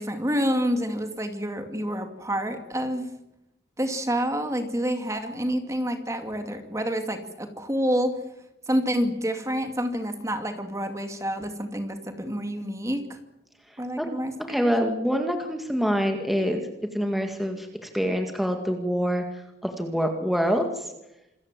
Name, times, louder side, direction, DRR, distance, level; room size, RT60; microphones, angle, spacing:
voice 1, 0.0-3.1 3.8-8.2 8.7-13.1 13.8-14.7, equal, 15° right, 7 dB, 2.3 m, -28 dB
voice 2, 14.5-20.9, equal, ahead, 4 dB, 2.0 m, -26 dB
27.5 x 21.5 x 7.5 m, 0.91 s
head